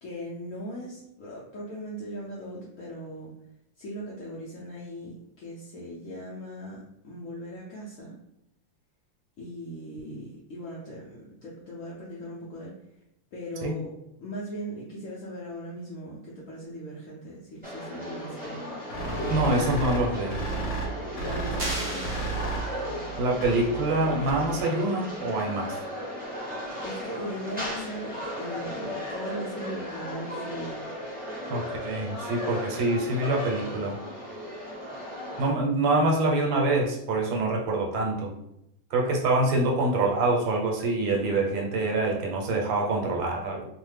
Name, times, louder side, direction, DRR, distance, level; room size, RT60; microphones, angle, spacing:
voice 1, 0.0-3.3 3.8-8.2 9.4-12.8 13.3-13.9 14.2-18.6 19.2-19.5 21.2-22.3 26.8-30.8, equal, 85° left, -5 dB, 0.7 m, -39 dB
sound 1, 17.6-35.5, equal, 10° right, 0.4 m, -36 dB
sound 2, 18.9-24.6, right 3 dB, 55° left, 1.1 m, -33 dB
voice 2, 19.3-20.4 23.2-25.8 31.5-34.0 35.4-38.3 38.9-43.7, right 2 dB, 80° right, 0 dB, 1.4 m, -25 dB
sound 3, 21.6-23.1, right 1 dB, 50° right, 0.8 m, -36 dB
3.1 x 2.1 x 3.2 m, 0.81 s
omnidirectional pair, 2.1 m